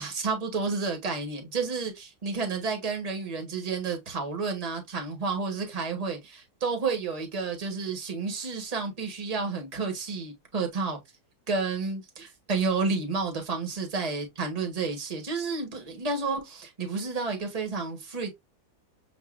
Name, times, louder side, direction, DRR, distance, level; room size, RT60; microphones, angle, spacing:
voice 1, 0.0-11.0 11.5-18.3, right 4 dB, 25° right, 1.3 m, -31 dB
7.3 x 2.5 x 2.4 m
omnidirectional pair, 1.7 m